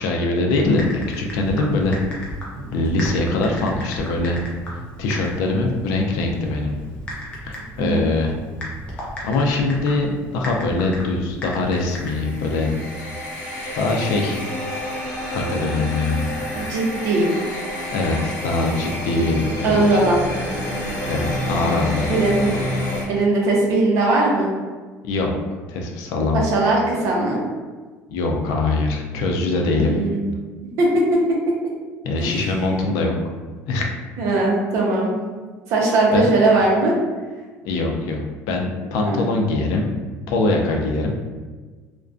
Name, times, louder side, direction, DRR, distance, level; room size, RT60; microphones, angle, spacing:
voice 1, 0.0-2.0 2.7-4.4 5.0-6.7 7.5-8.3 9.2-12.7 13.7-14.4 14.7-14.8 15.3-16.3 17.9-20.2 21.1-22.1 25.0-25.4 25.7-26.4 28.1-29.9 32.0-33.1 33.7-33.9 36.1-36.3 37.6-38.2 38.5-39.9 40.3-41.2, left 2 dB, 75° left, 1 dB, 0.4 m, -22 dB
Typing, 0.6-12.5, equal, 20° left, 0.4 m, -35 dB
sound 1, 11.8-23.0, left 1 dB, 55° left, 0.9 m, -29 dB
voice 2, 16.5-17.3 19.6-20.2 22.1-22.5 23.1-24.5 26.4-27.4 29.7-30.2 30.8-30.9 32.2-32.4 34.2-35.1 35.7-37.0 39.0-39.3, right 2 dB, 55° right, -2 dB, 0.6 m, -19 dB
2.4 x 2.1 x 2.4 m, 1.4 s
cardioid pair, 180°, 6 cm